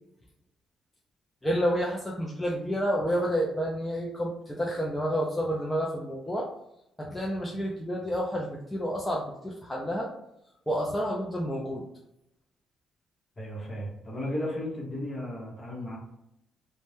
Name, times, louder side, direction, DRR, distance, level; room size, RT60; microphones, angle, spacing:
voice 1, 1.4-6.5 7.0-10.1 10.7-11.8, equal, 10° left, -2 dB, 0.5 m, -29 dB
voice 2, 13.4-16.0, left 1 dB, 30° left, -3 dB, 1.1 m, -34 dB
2.5 x 2.2 x 3.3 m, 0.82 s
cardioid pair, 90°, 0 cm